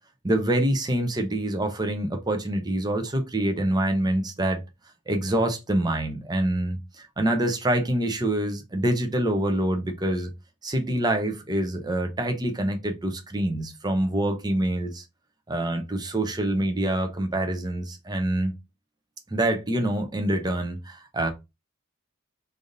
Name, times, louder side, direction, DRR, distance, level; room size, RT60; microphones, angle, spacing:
voice 1, 0.2-4.6 5.1-10.3 10.6-15.0 15.5-18.5 19.3-21.3, right 1 dB, 20° right, 0.7 m, -26 dB
3.4 x 2.6 x 3.8 m
head